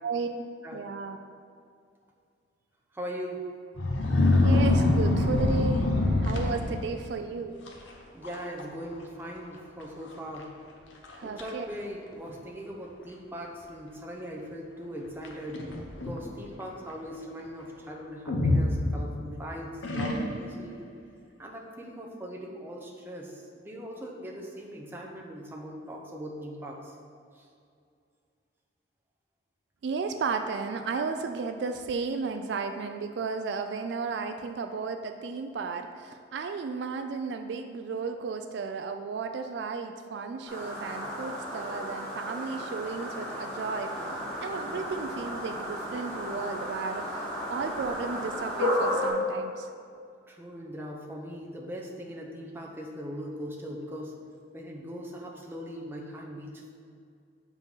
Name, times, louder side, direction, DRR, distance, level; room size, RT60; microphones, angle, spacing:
voice 1, 0.0-0.5 0.7-1.2 4.4-5.9 6.2-7.6 11.1-11.7 29.8-47.2 47.5-49.7, right 4 dB, 65° right, 6 dB, 0.3 m, -34 dB
voice 2, 2.9-3.4 6.6-6.8 8.1-10.5 11.2-15.7 16.0-20.8 21.4-26.9 27.3-27.4 50.3-54.1 54.5-56.7, equal, 10° right, -1 dB, 0.7 m, -40 dB
sound 1, 3.8-7.0 7.7-7.9 8.2-8.7 8.9-9.0 9.8-9.9 10.4-10.5 11.0-11.5 12.3-12.4 15.2-16.2 18.3-19.3 19.8-20.6, left 2 dB, 75° left, 0.9 m, -25 dB
sound 2, 40.5-49.1, equal, 5° left, 1.8 m, -33 dB
7.4 x 3.8 x 5.6 m, 2.3 s
head